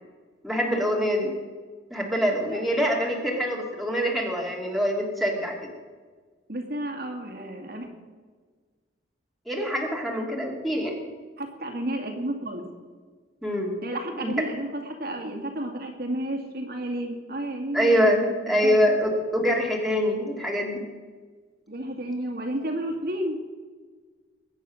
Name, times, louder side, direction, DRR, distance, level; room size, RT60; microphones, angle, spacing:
voice 1, 0.4-1.3 1.9-5.7 9.5-11.0 13.4-13.7 14.2-14.3 17.7-18.2 18.5-20.8, equal, ahead, -2 dB, 2.7 m, -24 dB
voice 2, 6.5-7.9 11.4-12.6 13.8-18.9 21.7-23.5, right 1 dB, 55° right, 3 dB, 2.3 m, -32 dB
21.5 x 9.2 x 6.4 m, 1.5 s
head